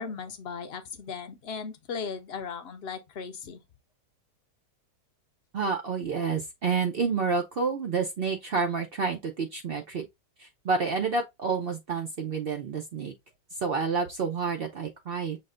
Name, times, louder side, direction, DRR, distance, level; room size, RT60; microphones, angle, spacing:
voice 1, 0.0-3.6, left 6 dB, 55° left, 0.7 m, -37 dB
voice 2, 5.5-10.1 10.4-13.1 13.6-15.4, right 5 dB, 75° right, 0.5 m, -29 dB
6.3 x 2.2 x 3.7 m
omnidirectional pair, 1.8 m